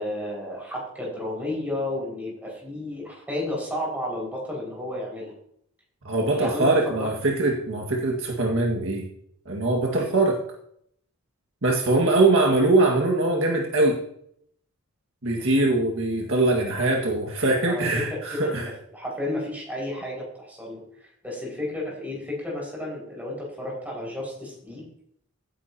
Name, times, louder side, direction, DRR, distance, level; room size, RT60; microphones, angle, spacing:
voice 1, 0.0-5.3 6.3-7.1 9.9-10.1 17.7-24.9, left 1 dB, 5° right, -4 dB, 5.6 m, -32 dB
voice 2, 6.0-9.1 9.5-10.4 11.6-14.0 15.2-18.7, right 2 dB, 60° right, 0 dB, 1.9 m, -22 dB
16.0 x 9.9 x 2.9 m, 0.68 s
head